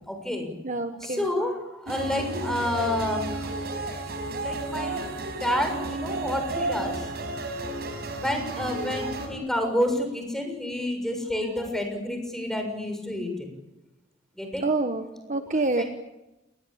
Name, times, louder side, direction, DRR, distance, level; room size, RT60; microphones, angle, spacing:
voice 1, 0.0-0.5 1.0-4.0 4.4-7.1 8.2-13.5 14.3-14.6 15.8-15.9, left 1 dB, ahead, 4 dB, 6.8 m, -29 dB
voice 2, 0.6-1.3 14.6-15.8, right 2 dB, 40° right, 7 dB, 1.4 m, -27 dB
sound 1, 1.9-9.3, right 2 dB, 55° right, 5.5 m, -32 dB
28.5 x 21.5 x 8.8 m, 0.97 s
head